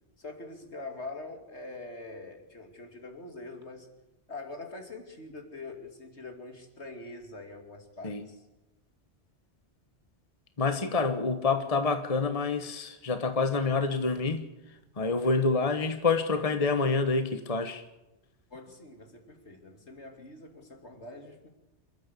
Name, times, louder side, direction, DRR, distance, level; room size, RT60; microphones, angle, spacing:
voice 1, 0.2-3.9 4.3-8.4 18.5-21.5, left 2 dB, 70° left, 3.1 m, -44 dB
voice 2, 10.6-14.5 15.0-17.8, left 4 dB, 30° left, 1.4 m, -27 dB
27.5 x 13.0 x 8.4 m
omnidirectional pair, 1.2 m